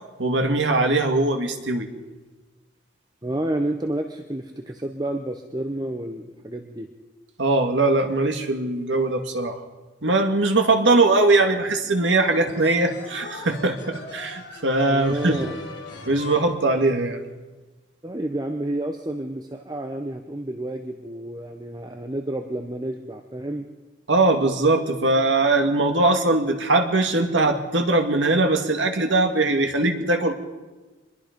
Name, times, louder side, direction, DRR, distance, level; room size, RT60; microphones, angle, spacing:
voice 1, 0.2-1.9 7.4-9.6 10.0-15.4 16.1-17.2 24.1-30.3, right 2 dB, 85° right, 5 dB, 2.1 m, -21 dB
voice 2, 3.2-6.9 14.9-15.6 18.0-23.7, right 1 dB, 20° right, 5 dB, 0.9 m, -30 dB
Speech, 10.6-12.2 12.8-16.9, left 1 dB, 35° left, 7.3 m, -44 dB
sound 1, 12.0-17.4, left 3 dB, 70° left, 3.6 m, -42 dB
24.5 x 21.0 x 5.3 m, 1.2 s
head